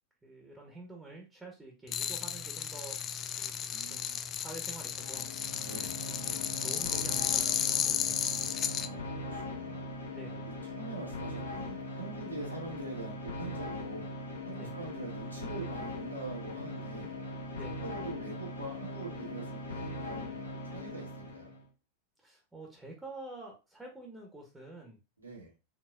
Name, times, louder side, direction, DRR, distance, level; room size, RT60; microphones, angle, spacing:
voice 1, 0.2-3.0 3.4-5.3 6.6-8.5 10.1-10.4 14.5-14.7 17.5-17.8 22.2-25.0, right 2 dB, 10° right, 1 dB, 1.1 m, -48 dB
sound 1, 1.9-8.9, left 8 dB, 30° left, 0.4 m, -33 dB
voice 2, 3.7-4.4 5.6-6.0 8.8-9.9 10.4-14.1 14.4-17.1 17.8-21.5 25.2-25.5, right 2 dB, 80° right, -1 dB, 1.7 m, -44 dB
sound 2, 4.8-21.6, left 1 dB, 70° left, 1.1 m, -40 dB
4.5 x 3.9 x 2.4 m, 0.28 s
figure-of-eight pair, 90°, 0 cm